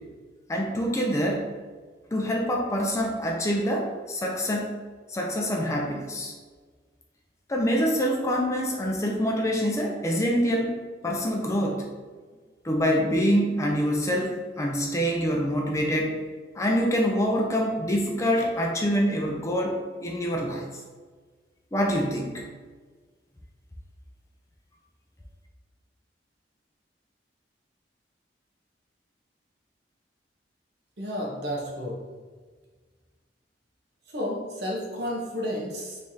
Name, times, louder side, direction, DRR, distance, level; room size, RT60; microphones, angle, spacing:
voice 1, 0.5-1.5 2.1-4.8 5.1-6.3 7.5-11.8 12.6-16.2 16.6-19.8 20.0-20.7 21.7-22.4, equal, 15° left, 0 dB, 0.3 m, -25 dB
voice 2, 31.0-32.0 34.1-36.0, equal, 65° right, -2 dB, 0.9 m, -31 dB
3.5 x 3.2 x 2.7 m, 1.4 s
head